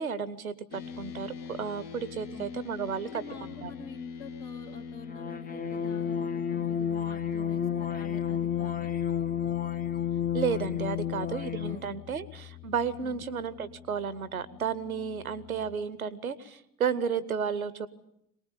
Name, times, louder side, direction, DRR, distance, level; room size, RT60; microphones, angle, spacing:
voice 1, 0.0-3.1 3.6-3.7 10.3-17.9, right 7 dB, 85° right, 18 dB, 0.9 m, -32 dB
sound 1, 0.7-15.8, left 6 dB, 60° left, 1.8 m, -44 dB
voice 2, 3.0-9.0 10.9-11.1 11.6-12.2 13.0-13.2, left 5 dB, 80° left, -5 dB, 2.7 m, -47 dB
sound 2, 5.1-11.9, left 9 dB, 20° left, 0.8 m, -31 dB
23.0 x 20.0 x 9.0 m, 0.78 s
figure-of-eight pair, 55°, 42 cm